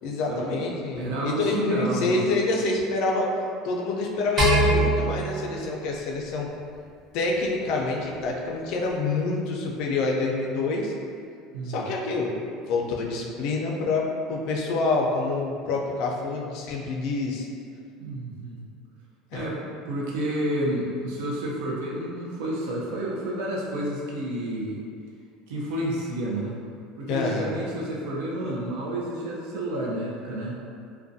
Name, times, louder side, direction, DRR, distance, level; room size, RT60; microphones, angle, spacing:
voice 1, 0.0-3.3 3.6-6.5 7.1-10.9 11.6-12.4 12.7-17.5 19.3-19.5 27.1-27.5, left 3 dB, 60° left, -1 dB, 0.3 m, -27 dB
voice 2, 0.9-2.2 11.5-11.9 18.0-18.6 19.3-24.8 25.5-26.5 27.0-30.6, right 1 dB, 80° right, -4 dB, 0.5 m, -30 dB
sound 1, 4.4-6.8, right 1 dB, 40° right, 0.8 m, -24 dB
2.3 x 2.1 x 2.6 m, 2.3 s
cardioid pair, 145°, 0 cm